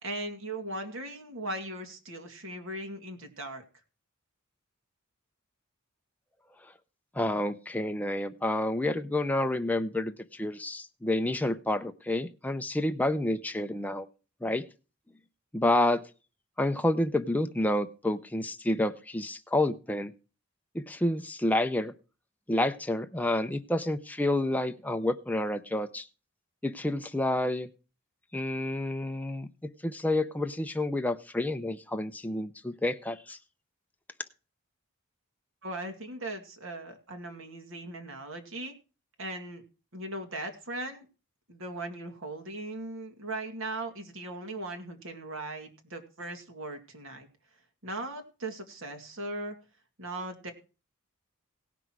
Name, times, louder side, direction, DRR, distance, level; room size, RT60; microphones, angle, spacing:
voice 1, 0.0-3.6 35.6-38.7 39.2-39.6 39.9-41.1 41.5-47.3 47.8-49.6 50.0-50.5, right 2 dB, 70° right, 4 dB, 2.3 m, -38 dB
voice 2, 7.1-14.1 14.4-14.7 15.5-16.0 16.6-20.1 20.7-21.9 22.5-26.1 26.6-27.7 28.3-29.5 29.8-33.4, left 1 dB, 10° left, 7 dB, 0.5 m, -29 dB
17.0 x 6.1 x 4.6 m, 0.33 s
head